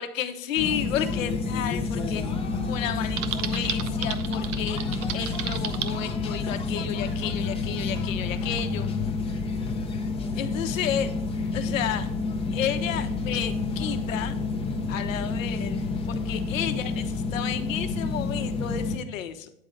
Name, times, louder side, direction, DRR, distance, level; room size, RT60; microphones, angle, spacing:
voice 1, 0.0-2.2 2.7-4.8 5.1-8.9 10.4-11.1 11.5-12.1 12.5-14.3 14.9-15.8 16.1-19.5, left 10 dB, 60° left, 9 dB, 1.1 m, -32 dB
sound 1, 0.6-19.0, left 3 dB, 15° left, 0.8 m, -29 dB
Typing, 3.2-5.9, right 10 dB, 40° right, 0.6 m, -33 dB
9.6 x 3.7 x 5.2 m, 0.75 s
hypercardioid pair, 125°, 44 cm